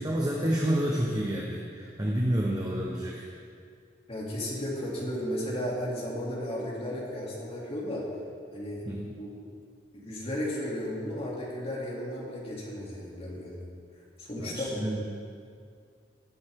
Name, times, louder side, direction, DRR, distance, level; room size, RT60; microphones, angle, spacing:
voice 1, 0.0-3.3 8.8-9.1 14.4-15.0, right 1 dB, 20° right, -3 dB, 1.2 m, -29 dB
voice 2, 4.1-8.1 8.5-8.8 9.2-9.3 9.9-13.6 14.2-14.7, equal, 35° left, -5 dB, 3.0 m, -34 dB
18.0 x 8.9 x 3.8 m, 2.3 s
head